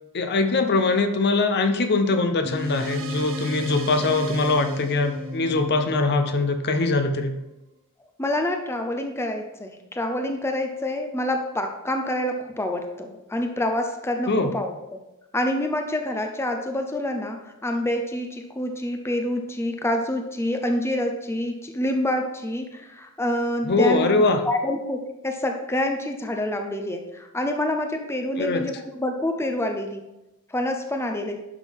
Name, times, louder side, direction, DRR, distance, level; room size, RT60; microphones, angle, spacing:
voice 1, 0.1-7.3 14.3-14.5 23.6-24.4 28.4-28.7, left 3 dB, 50° left, 7 dB, 0.7 m, -22 dB
sound 1, 2.4-7.3, left 1 dB, 65° right, 1.2 m, -34 dB
voice 2, 8.2-14.7 15.3-30.1 30.5-31.4, left 1 dB, 10° left, 5 dB, 0.6 m, -27 dB
11.0 x 6.3 x 3.6 m, 0.96 s
head